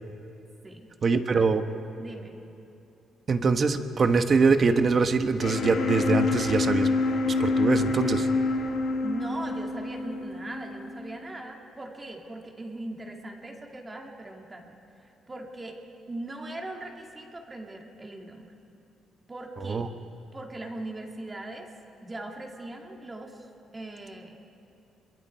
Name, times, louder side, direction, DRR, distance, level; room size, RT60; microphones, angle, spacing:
voice 1, 1.0-1.6 3.3-6.9 7.4-8.3 19.7-19.9, right 4 dB, 45° right, 8 dB, 1.2 m, -23 dB
voice 2, 2.0-2.3 9.0-14.8 15.0-15.8 16.1-18.5 19.3-19.9 20.3-21.7 22.0-23.5 23.7-24.4, right 2 dB, 25° right, 1 dB, 2.7 m, -39 dB
sound 1, 5.4-11.3, left 3 dB, 75° left, 2.2 m, -27 dB
26.0 x 22.5 x 4.7 m, 2.8 s
cardioid pair, 90°, 0 cm